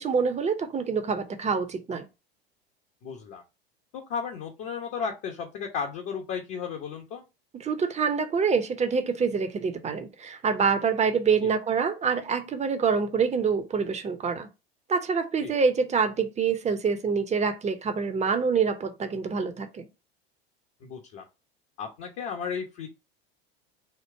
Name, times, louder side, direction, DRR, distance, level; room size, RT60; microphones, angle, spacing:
voice 1, 0.0-2.0 7.5-14.5 14.9-19.9, right 5 dB, 20° right, 0.8 m, -26 dB
voice 2, 3.0-3.4 3.9-7.2 11.4-11.5 15.4-15.5 20.8-21.2 21.8-22.9, left 6 dB, 45° left, 1.1 m, -34 dB
4.5 x 2.4 x 4.6 m
figure-of-eight pair, 80°, 31 cm